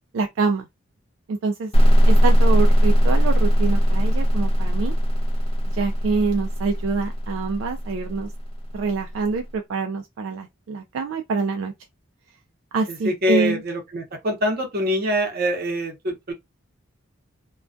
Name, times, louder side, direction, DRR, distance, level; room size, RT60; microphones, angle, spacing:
voice 1, 0.1-0.7 1.3-1.7 2.1-4.9 5.7-8.3 8.7-11.7 12.7-13.6, right 4 dB, 70° right, 0.3 m, -25 dB
sound 1, 1.7-9.3, equal, 30° left, 0.5 m, -19 dB
voice 2, 12.9-16.3, equal, 50° right, 0.8 m, -24 dB
2.2 x 2.2 x 2.5 m
head